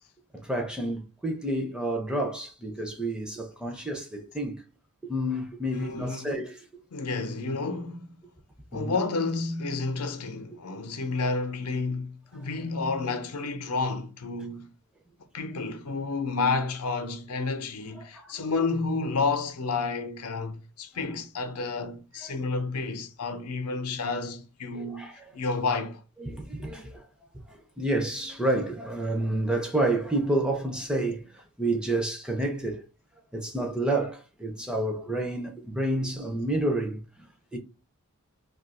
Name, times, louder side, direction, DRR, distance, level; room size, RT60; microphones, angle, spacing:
voice 1, 0.3-4.6 5.1-6.8 8.7-9.0 12.4-12.6 18.1-18.5 20.9-21.0 22.2-22.4 24.8-25.1 26.2-27.1 27.5-32.8 33.3-37.3 37.5-37.6, right 1 dB, 5° right, 0.4 m, -29 dB
voice 2, 5.7-6.3 6.9-8.1 8.7-14.7 15.3-25.1 25.3-26.0, left 4 dB, 90° left, 0.6 m, -30 dB
2.7 x 2.3 x 4.0 m
head